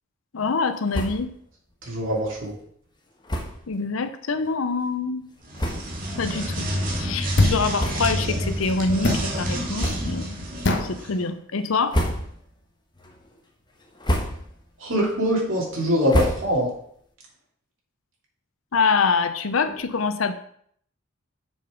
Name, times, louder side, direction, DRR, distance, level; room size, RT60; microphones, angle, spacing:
voice 1, 0.3-1.3 3.7-5.3 6.2-6.7 7.0-10.5 10.8-12.0 18.7-20.3, left 4 dB, 80° left, 10 dB, 0.7 m, -25 dB
sound 1, 0.9-1.4 1.7-1.8 2.1-2.2 3.2-3.7 4.4-4.5 5.2-5.3 5.5-6.1 6.6-6.8 7.7-8.4 8.7-8.9 9.7-10.3 10.8-11.2 11.7-12.6 13.0-13.4 13.8-14.7 15.0-16.9, equal, 20° left, 1.2 m, -29 dB
voice 2, 1.9-2.5 14.8-16.7, equal, 70° right, -2 dB, 2.8 m, -23 dB
sound 2, 5.4-11.1, equal, 45° right, 1.6 m, -29 dB
sound 3, 7.4-7.7 9.0-9.3 10.6-11.0, left 2 dB, 60° left, 1.2 m, -21 dB
7.1 x 6.1 x 5.1 m, 0.64 s
head